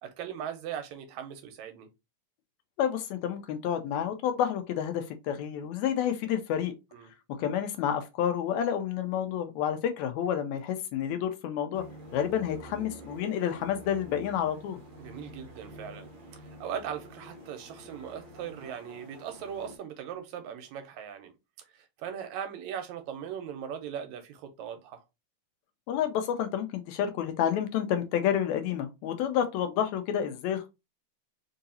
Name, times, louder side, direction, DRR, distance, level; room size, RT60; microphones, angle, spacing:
voice 1, 0.0-1.9 6.9-7.1 15.0-16.1 16.4-21.3 21.6-25.0, right 8 dB, 80° right, 1.9 m, -39 dB
voice 2, 2.8-6.7 7.4-11.8 12.1-14.8 25.9-30.7, left 9 dB, 80° left, 1.9 m, -29 dB
sound 1, 11.7-19.8, right 1 dB, 60° right, 1.2 m, -48 dB
4.6 x 2.7 x 2.7 m
omnidirectional pair, 3.4 m